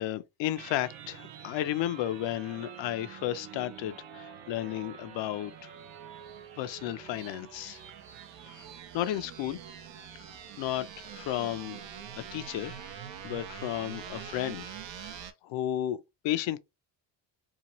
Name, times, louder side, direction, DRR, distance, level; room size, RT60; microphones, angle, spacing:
voice 1, 0.0-5.7 6.6-7.8 8.5-8.7 8.9-9.6 10.6-11.8 12.2-12.9 13.2-14.7 14.9-16.0 16.2-16.6, left 13 dB, 70° left, 0.5 m, -33 dB
sound 1, 0.6-15.3, right 8 dB, 70° right, 0.7 m, -45 dB
2.8 x 2.2 x 2.9 m
cardioid pair, 95°, 46 cm